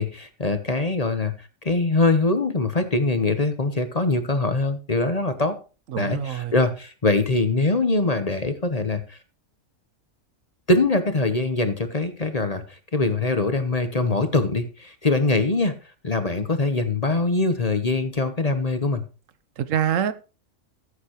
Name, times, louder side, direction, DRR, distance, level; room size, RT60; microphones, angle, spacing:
voice 1, 0.0-5.6 6.0-9.2 10.7-15.7 16.0-19.0, left 2 dB, 30° left, 1.0 m, -23 dB
voice 2, 5.9-6.5 19.6-20.1, right 9 dB, 75° right, 1.1 m, -25 dB
14.5 x 8.3 x 3.0 m
omnidirectional pair, 1.4 m